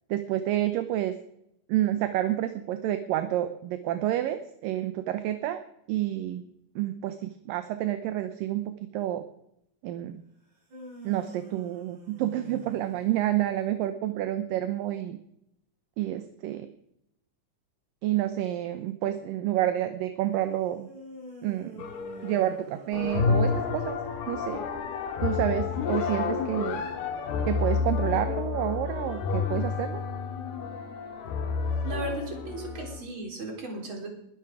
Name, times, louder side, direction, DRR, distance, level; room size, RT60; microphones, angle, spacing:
voice 1, 0.1-1.1 1.7-5.6 5.9-6.4 6.8-9.3 9.8-10.2 11.0-15.2 16.0-16.7 18.0-20.9 21.4-21.8 22.2-24.0 24.3-24.6 25.2-26.8 27.5-30.0, right 13 dB, 75° right, 9 dB, 2.3 m, -29 dB
sound 1, 10.4-13.7 20.8-23.8, right 2 dB, 55° right, 8.4 m, -48 dB
sound 2, 21.8-22.5 22.9-33.0, left 5 dB, 75° left, 3.6 m, -30 dB
voice 2, 31.8-34.1, right 2 dB, 35° right, 1 dB, 4.5 m, -36 dB
22.0 x 10.5 x 4.9 m, 0.78 s
omnidirectional pair, 4.4 m